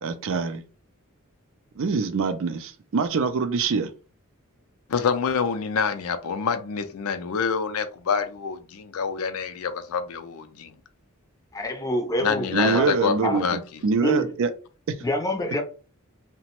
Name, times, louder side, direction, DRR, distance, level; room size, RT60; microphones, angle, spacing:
voice 1, 0.0-0.6 1.8-3.9 12.5-14.5 14.9-15.0, right 5 dB, 65° right, 0.4 m, -25 dB
voice 2, 4.9-10.7 12.2-13.6, left 6 dB, 75° left, 0.4 m, -26 dB
voice 3, 11.5-12.9 13.2-13.4 14.0-14.3 15.0-15.6, equal, 15° left, 0.5 m, -26 dB
2.9 x 2.1 x 2.9 m
head